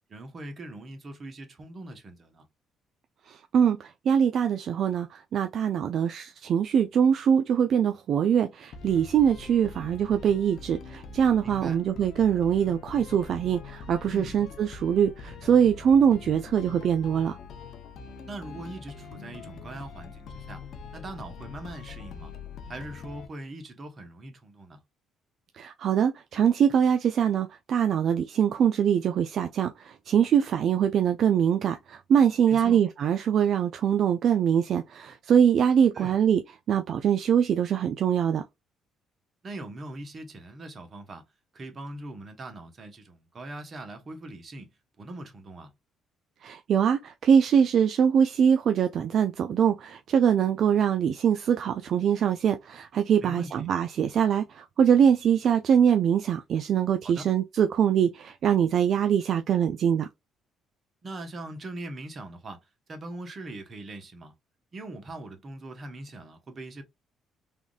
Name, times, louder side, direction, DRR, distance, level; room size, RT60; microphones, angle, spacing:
voice 1, 0.1-2.4 11.4-11.8 14.1-14.4 18.2-20.6 20.9-22.3 22.7-24.8 32.5-32.8 35.9-36.2 39.4-41.2 41.5-44.7 45.0-45.7 53.2-53.7 57.0-57.3 61.0-62.6 62.9-64.3 64.7-66.8, right 2 dB, 40° right, 0.9 m, -41 dB
voice 2, 3.3-3.8 4.1-17.4 25.6-36.4 36.7-38.4 46.4-60.1, right 8 dB, 60° right, 0.3 m, -23 dB
sound 1, 8.7-23.3, left 5 dB, 60° left, 0.5 m, -43 dB
3.4 x 2.4 x 2.2 m
cardioid pair, 95°, 0 cm